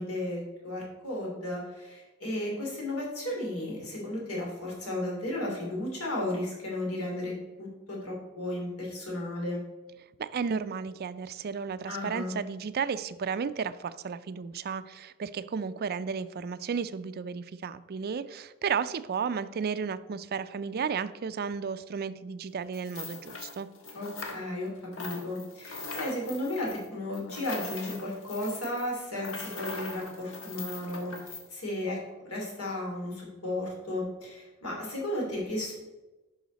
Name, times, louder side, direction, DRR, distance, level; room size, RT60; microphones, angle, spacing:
voice 1, 0.0-9.6 11.9-12.3 23.9-32.0 32.3-35.7, left 1 dB, 80° left, -2 dB, 3.0 m, -34 dB
voice 2, 10.2-23.7, right 6 dB, 45° right, 13 dB, 0.4 m, -33 dB
sound 1, 22.7-24.7 24.9-31.5, left 3 dB, 65° left, 1.4 m, -41 dB
10.5 x 5.7 x 4.0 m, 1.1 s
head